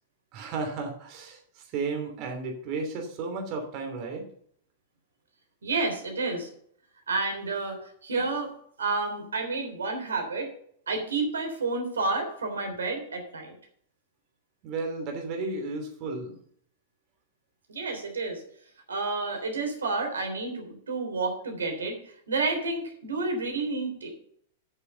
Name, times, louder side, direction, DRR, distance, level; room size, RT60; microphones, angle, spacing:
voice 1, 0.3-4.3 14.6-16.4, right 3 dB, 45° right, 2 dB, 3.0 m, -33 dB
voice 2, 5.6-6.5 7.1-8.5 8.8-10.5 10.9-13.5 17.7-18.4 18.9-24.1, right 3 dB, 85° right, 3 dB, 3.4 m, -30 dB
8.7 x 6.9 x 6.9 m, 0.63 s
hypercardioid pair, 105°, 0 cm